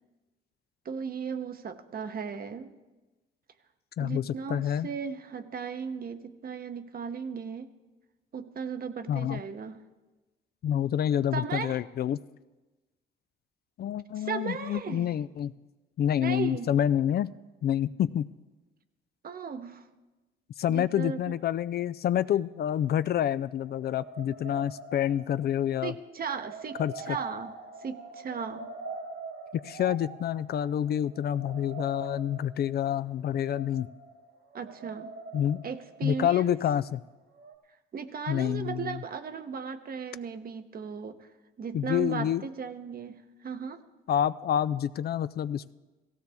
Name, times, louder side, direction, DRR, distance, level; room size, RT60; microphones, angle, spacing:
voice 1, 0.8-2.7 4.0-7.7 8.3-9.8 11.3-11.8 14.2-15.2 16.2-16.7 19.2-19.9 20.7-21.2 25.8-26.8 27.1-27.5 27.8-28.7 34.5-35.1 35.6-36.6 37.9-41.3 41.6-43.8, right 6 dB, 50° right, 9 dB, 0.9 m, -36 dB
voice 2, 4.0-4.9 9.1-9.4 10.6-12.2 13.8-15.5 16.0-17.3 17.6-18.3 20.6-25.9 26.8-27.2 29.5-33.9 35.3-35.6 36.0-37.0 38.3-39.0 41.7-42.4 44.1-45.7, left 10 dB, 55° left, 15 dB, 0.4 m, -28 dB
sound 1, 23.5-37.0 37.4-37.6, right 4 dB, 70° right, 2.2 m, -44 dB
17.0 x 15.5 x 3.5 m, 1.1 s
cardioid pair, 90°, 20 cm